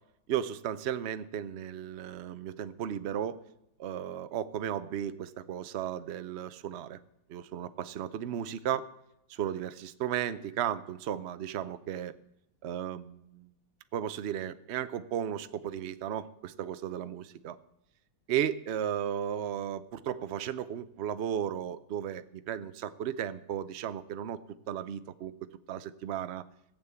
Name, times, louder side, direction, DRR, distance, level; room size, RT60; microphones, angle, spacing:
voice 1, 0.3-3.4 3.8-7.0 7.3-8.9 9.3-12.1 12.6-13.5 13.9-17.6 18.3-24.4 24.7-25.3 25.7-26.4, right 10 dB, 70° right, 12 dB, 0.6 m, -35 dB
16.5 x 7.3 x 8.1 m, 0.82 s
omnidirectional pair, 2.0 m